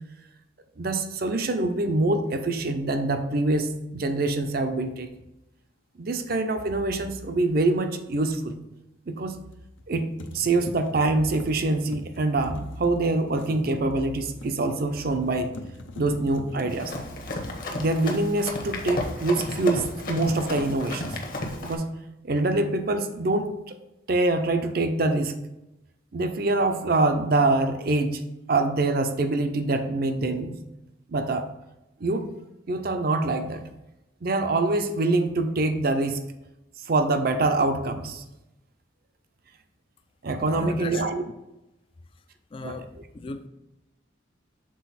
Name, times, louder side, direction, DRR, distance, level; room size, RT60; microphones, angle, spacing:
voice 1, 0.8-5.1 6.0-8.5 9.1-9.4 9.9-15.5 16.0-16.9 17.7-21.2 21.6-21.9 22.2-23.8 24.1-25.3 26.1-28.2 28.5-30.6 31.1-31.5 32.0-32.3 32.7-33.6 34.2-36.2 36.8-38.2 40.2-41.2 42.6-42.7, right 2 dB, 50° right, 0.5 m, -25 dB
sound 1, 6.2-6.4 9.5-9.9 10.2-18.4 18.7-19.1, left 2 dB, 75° left, 0.6 m, -44 dB
Run, 16.7-21.7, left 2 dB, 45° left, 0.9 m, -33 dB
voice 2, 40.5-41.3 42.1-42.2 42.5-43.5, left 3 dB, 25° left, 0.3 m, -37 dB
6.2 x 3.9 x 4.1 m
head